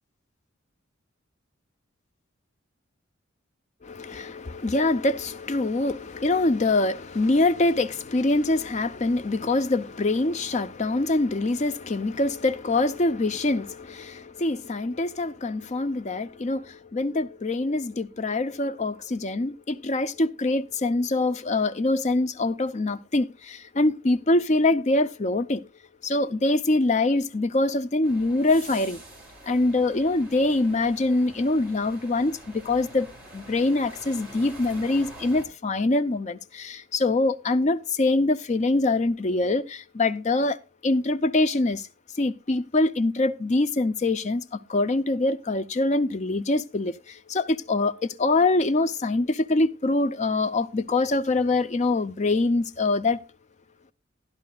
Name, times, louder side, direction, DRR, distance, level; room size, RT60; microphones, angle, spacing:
voice 1, 3.8-25.6 26.0-29.0 29.4-33.1 33.3-40.6 40.8-41.9 42.2-53.2, left 2 dB, 35° left, 0.5 m, -24 dB
sound 1, 28.0-35.5, right 1 dB, 5° right, 4.4 m, -46 dB
13.0 x 11.5 x 2.3 m
head